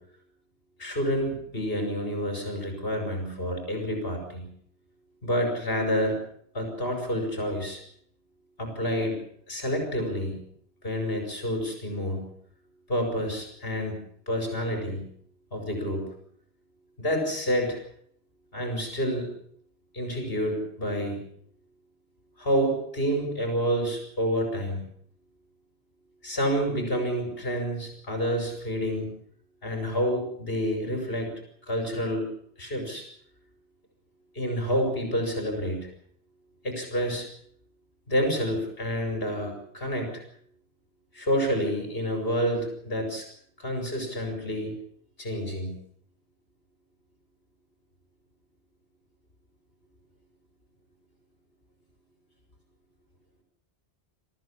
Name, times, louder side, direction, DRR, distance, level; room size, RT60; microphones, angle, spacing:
voice 1, 0.8-4.5 5.2-6.2 6.5-7.8 8.6-9.2 9.5-10.4 10.8-12.3 12.9-15.0 15.5-16.0 17.0-17.8 18.5-19.3 19.9-21.2 22.4-24.8 26.2-29.1 29.6-31.3 31.7-32.3 32.6-33.1 34.3-35.9 36.6-37.3 38.1-40.2 41.1-43.3 43.6-44.7 45.2-45.7, equal, 60° left, 3 dB, 5.8 m, -28 dB
23.5 x 14.5 x 10.0 m, 0.66 s
omnidirectional pair, 1.1 m